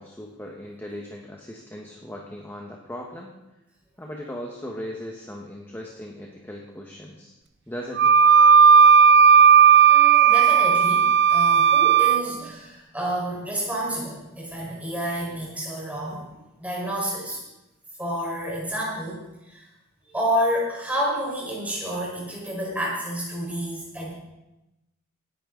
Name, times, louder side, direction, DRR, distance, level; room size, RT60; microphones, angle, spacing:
voice 1, 0.0-3.3 4.0-7.3 7.7-8.2, equal, 10° left, -1 dB, 1.3 m, -38 dB
Wind instrument woodwind instrument, 8.0-12.2, right 7 dB, 55° right, 0.6 m, -14 dB
voice 2, 9.9-16.3 16.6-17.4 18.0-19.7 20.1-24.1, equal, 5° right, -4 dB, 4.6 m, -29 dB
17.5 x 10.5 x 3.9 m, 0.98 s
head